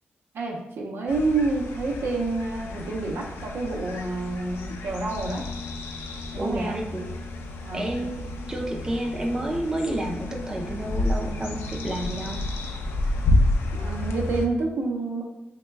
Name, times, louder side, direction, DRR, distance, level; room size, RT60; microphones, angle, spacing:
voice 1, 0.3-5.4 6.3-6.8 7.6-7.9 13.7-15.2, right 3 dB, 75° right, 0 dB, 0.6 m, -28 dB
sound 1, 1.1-14.5, left 1 dB, 90° left, 0.4 m, -30 dB
voice 2, 6.4-7.1 7.7-12.4, right 1 dB, 15° right, 0 dB, 0.4 m, -30 dB
3.2 x 2.1 x 3.2 m, 0.95 s
cardioid pair, 110°, 4 cm